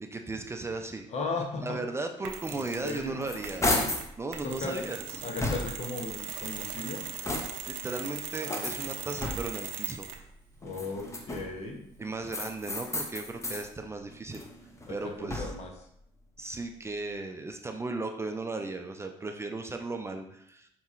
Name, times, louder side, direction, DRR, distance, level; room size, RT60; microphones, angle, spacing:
voice 1, 0.0-1.1 1.6-5.0 7.7-10.1 12.0-14.5 14.9-15.5 16.4-20.7, right 3 dB, 20° right, 5 dB, 0.4 m, -36 dB
voice 2, 1.1-1.8 2.5-3.2 4.4-4.8 5.2-7.0 10.6-11.8 14.9-15.7, left 3 dB, 55° left, 2 dB, 0.9 m, -36 dB
Mechanisms, 2.2-3.1 3.4-10.3, right 8 dB, 90° right, 0.4 m, -40 dB
sound 1, 2.8-4.1 4.7-6.0 6.6-7.8 8.5-9.7 10.6-11.7 12.3-13.7 14.1-15.8, left 2 dB, 20° left, 0.7 m, -34 dB
5.3 x 2.9 x 2.4 m, 0.71 s
supercardioid pair, 70°, 13 cm